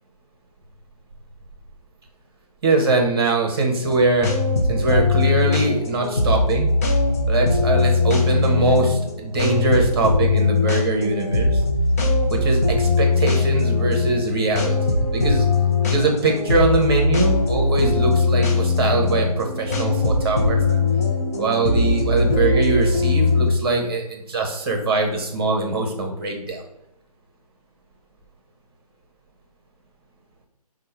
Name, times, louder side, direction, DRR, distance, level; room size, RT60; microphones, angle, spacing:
voice 1, 2.6-4.3 4.7-6.7 7.3-11.6 12.3-15.5 15.9-20.8 21.4-26.6, right 3 dB, 40° right, 2 dB, 1.0 m, -22 dB
sound 1, 3.8-23.5, left 3 dB, 25° left, 0.5 m, -20 dB
5.1 x 2.2 x 4.4 m, 0.77 s
figure-of-eight pair, 150°, 20 cm